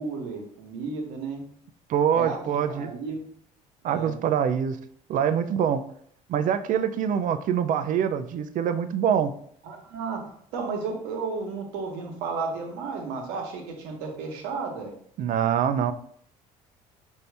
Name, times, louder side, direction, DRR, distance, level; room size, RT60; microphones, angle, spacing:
voice 1, 0.0-1.4 2.1-3.2 3.9-4.1 9.6-10.2 10.5-15.0, right 4 dB, 85° right, 2 dB, 1.1 m, -33 dB
voice 2, 1.9-2.9 3.8-4.8 5.1-5.8 6.3-9.3 15.2-15.9, right 8 dB, 55° right, 10 dB, 0.5 m, -24 dB
5.5 x 2.7 x 3.3 m, 0.63 s
supercardioid pair, 80°, 16 cm